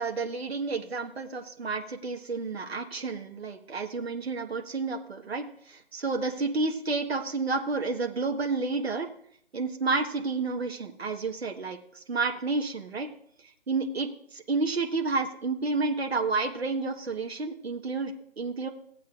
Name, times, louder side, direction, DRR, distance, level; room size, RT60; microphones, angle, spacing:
voice 1, 0.0-9.1 9.5-13.1 13.7-18.7, right 3 dB, 70° right, 4 dB, 1.4 m, -30 dB
17.0 x 8.5 x 2.5 m, 0.65 s
figure-of-eight pair, 165°, 32 cm